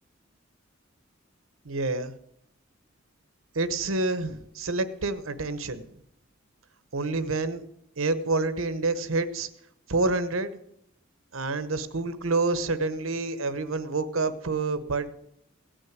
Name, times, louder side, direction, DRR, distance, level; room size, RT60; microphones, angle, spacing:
voice 1, 1.6-2.1 3.5-5.8 6.9-7.6 8.0-9.5 9.9-10.5 11.3-15.2, right 3 dB, 90° right, 12 dB, 1.1 m, -28 dB
17.0 x 6.4 x 9.3 m, 0.76 s
head